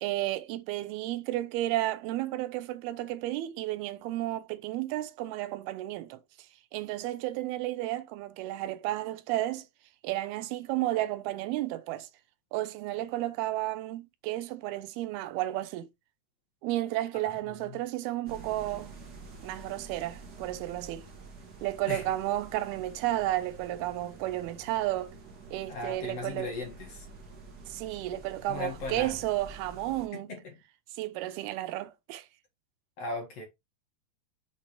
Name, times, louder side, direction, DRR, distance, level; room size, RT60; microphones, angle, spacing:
voice 1, 0.0-6.2 6.7-9.6 10.0-12.1 12.5-15.9 16.6-18.9 19.4-21.1 21.6-25.1 25.5-26.5 27.7-30.3 31.0-32.3, right 15 dB, 85° right, 2.7 m, -32 dB
sound 1, 18.2-30.1, right 3 dB, 50° right, 1.2 m, -48 dB
voice 2, 25.7-27.1 28.5-29.2 30.1-30.6 33.0-33.5, left 3 dB, 50° left, 2.4 m, -37 dB
6.8 x 4.3 x 4.5 m
omnidirectional pair, 4.4 m